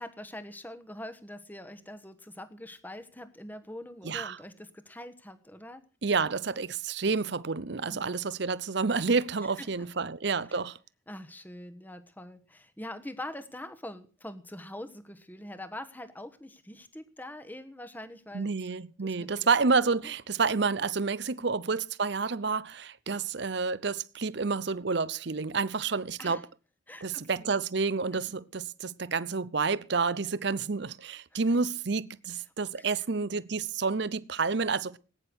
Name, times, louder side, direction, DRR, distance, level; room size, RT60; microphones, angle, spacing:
voice 1, 0.0-5.8 7.9-8.2 9.6-9.7 10.5-10.6 11.1-18.5 19.0-19.5 20.0-20.1 21.3-21.5 26.2-26.4 26.9-27.5 31.3-31.4 32.8-33.1, left 1 dB, 10° left, 1.2 m, -44 dB
voice 2, 4.0-4.4 6.0-10.8 18.3-26.5 27.0-35.0, right 4 dB, 60° right, 0.7 m, -29 dB
19.5 x 10.0 x 6.2 m
head